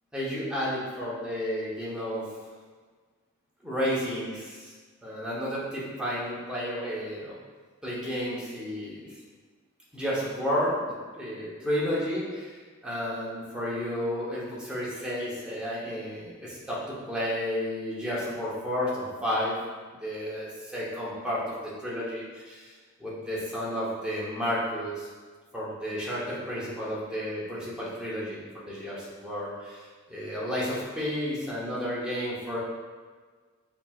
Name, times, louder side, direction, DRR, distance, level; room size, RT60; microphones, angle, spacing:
voice 1, 0.1-2.3 3.6-4.7 5.0-7.4 7.8-9.1 9.9-19.5 20.0-22.7 23.0-25.1 25.5-32.6, equal, 5° right, -8 dB, 0.9 m, -32 dB
5.2 x 2.9 x 2.3 m, 1.5 s
head